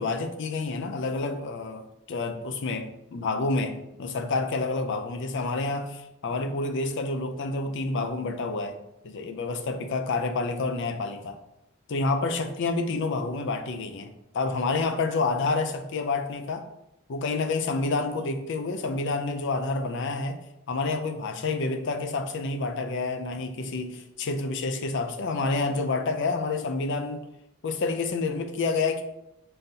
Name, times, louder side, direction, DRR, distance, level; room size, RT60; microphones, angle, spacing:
voice 1, 0.0-8.8 9.0-11.4 11.9-14.1 14.3-16.7 17.1-20.4 20.7-27.3 27.6-29.0, left 3 dB, 55° left, 7 dB, 0.4 m, -28 dB
3.9 x 3.8 x 2.7 m, 0.85 s
head